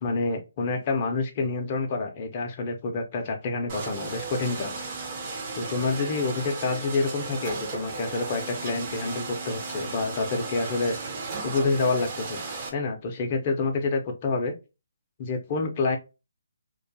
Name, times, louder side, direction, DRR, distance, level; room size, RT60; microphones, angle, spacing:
voice 1, 0.0-4.7 5.5-11.0 11.4-12.4 12.7-14.5 15.2-16.0, left 3 dB, 35° left, 3 dB, 0.5 m, -28 dB
sound 1, 3.7-12.7, right 3 dB, 30° right, 0.6 m, -35 dB
2.3 x 2.3 x 2.5 m, 0.29 s
figure-of-eight pair, 150°, 0 cm